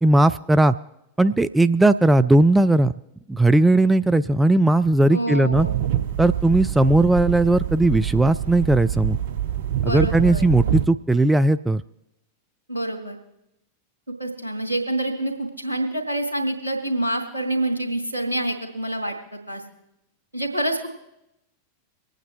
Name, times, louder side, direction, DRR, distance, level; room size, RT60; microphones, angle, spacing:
voice 1, 0.0-0.8 1.2-2.9 3.3-5.7 6.2-9.2 9.8-11.8, right 2 dB, 5° right, 12 dB, 0.3 m, -17 dB
voice 2, 5.1-5.8 9.8-10.5 12.7-13.2 14.2-19.2 19.5-19.6 20.3-20.9, right 1 dB, 80° right, 3 dB, 2.2 m, -26 dB
sound 1, 5.5-10.9, right 11 dB, 55° right, 0.7 m, -26 dB
25.0 x 9.2 x 3.1 m, 0.87 s
figure-of-eight pair, 90°, 0 cm